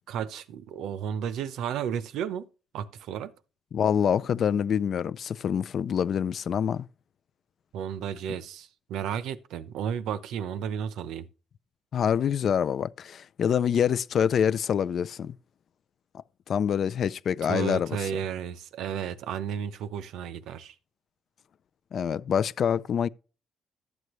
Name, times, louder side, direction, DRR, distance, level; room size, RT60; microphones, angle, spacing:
voice 1, 0.1-2.4 2.7-3.3 7.7-11.3 17.4-20.7, right 8 dB, 85° right, 0.7 m, -33 dB
voice 2, 3.7-6.9 11.9-15.3 16.1-18.0 21.9-23.1, left 8 dB, 55° left, 0.4 m, -26 dB
12.0 x 8.0 x 3.1 m
cardioid pair, 100°, 0 cm